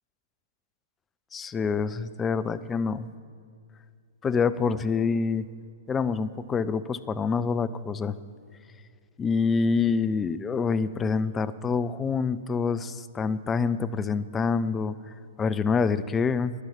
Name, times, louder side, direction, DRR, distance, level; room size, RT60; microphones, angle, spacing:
voice 1, 1.3-3.1 4.2-5.5 5.9-8.2 9.2-15.0 15.4-16.5, left 5 dB, 15° left, 14 dB, 0.5 m, -26 dB
11.5 x 10.5 x 7.3 m, 2.2 s
figure-of-eight pair, 110°, 0 cm